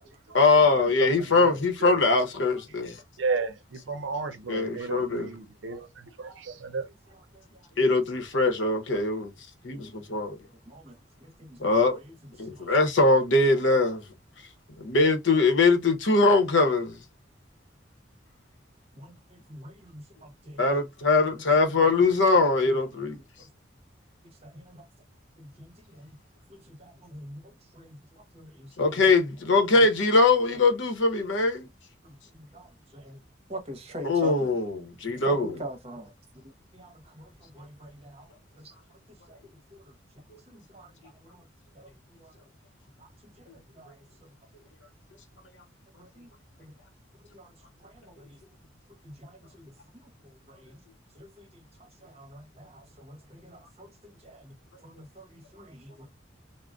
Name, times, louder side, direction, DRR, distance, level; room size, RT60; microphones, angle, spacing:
voice 1, 0.3-2.9 4.5-5.3 7.8-9.3 9.6-10.4 11.6-12.0 12.4-14.0 14.8-17.0 20.6-23.2 28.8-31.7 34.0-35.6, left 3 dB, 75° left, 0.8 m, -22 dB
voice 2, 1.0-1.5 1.8-2.0 3.2-5.9 6.2-6.8, right 4 dB, 75° right, 0.6 m, -32 dB
voice 3, 7.1-7.8 10.7-12.7 19.0-20.6 21.8-21.9 23.4-23.5 24.4-24.8 25.4-26.2 26.5-28.9 32.0-33.2 33.5-34.6 35.3-36.1 36.4-38.3 38.6-38.7 39.3-39.4 39.7-39.9 40.5-41.4 41.7-41.9 42.2-42.3 43.0-43.9 44.2-44.3 46.0-46.3 46.6-46.7 47.3-47.5 47.8-48.4 49.0-49.7 50.0-50.8 51.2-51.5 51.8-54.6 54.8-56.1, right 1 dB, 30° right, 0.8 m, -45 dB
3.7 x 2.0 x 2.3 m
head